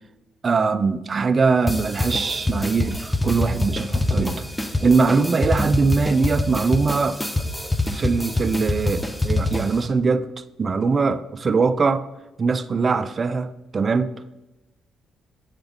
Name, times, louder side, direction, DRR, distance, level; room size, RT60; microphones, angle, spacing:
voice 1, 0.4-4.4 4.8-7.5 7.9-10.3 10.6-12.1 12.4-14.1, right 4 dB, 40° right, 0.3 m, -21 dB
sound 1, 1.7-9.9, left 2 dB, 10° left, 0.6 m, -25 dB
7.9 x 3.8 x 3.5 m
cardioid pair, 90°, 0 cm